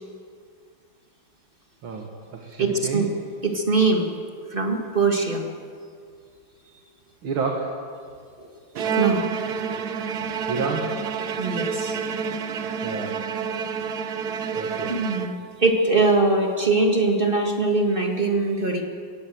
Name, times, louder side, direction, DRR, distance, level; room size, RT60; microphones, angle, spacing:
voice 1, 1.8-3.1 7.2-7.9 10.5-11.1 12.8-13.3 14.5-15.0, right 4 dB, 80° right, 2 dB, 2.6 m, -30 dB
voice 2, 2.6-3.1 3.4-4.1 4.5-5.4 8.4-8.5 8.7-9.2 11.4-12.0 14.9-15.3 15.6-18.8, right 3 dB, 25° right, 3 dB, 2.0 m, -22 dB
Bowed string instrument, 8.7-15.7, right 6 dB, 60° right, 1.3 m, -28 dB
22.5 x 18.0 x 7.8 m, 2.2 s
omnidirectional pair, 2.2 m